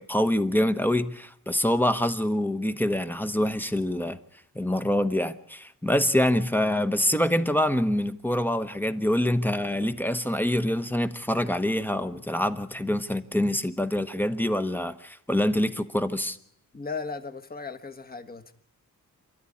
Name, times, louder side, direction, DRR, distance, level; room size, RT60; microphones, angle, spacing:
voice 1, 0.0-4.2 4.5-16.4, left 1 dB, 5° left, 1.0 m, -25 dB
voice 2, 16.7-18.5, left 4 dB, 25° left, 1.4 m, -36 dB
28.0 x 13.0 x 9.9 m
wide cardioid pair, 145°, 35 cm